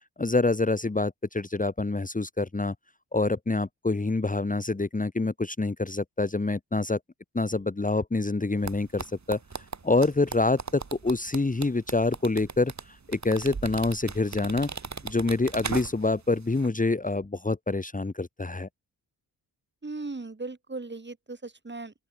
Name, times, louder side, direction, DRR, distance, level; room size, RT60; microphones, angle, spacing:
voice 1, 0.2-2.7 3.1-7.0 7.3-14.7 15.0-18.7, left 3 dB, 20° left, 1.9 m, -26 dB
sound 1, 8.6-16.2 16.5-16.7, right 4 dB, 45° right, 7.9 m, -37 dB
voice 2, 19.8-21.9, right 3 dB, 25° right, 7.1 m, -37 dB
open air
wide cardioid pair, 110°, 40 cm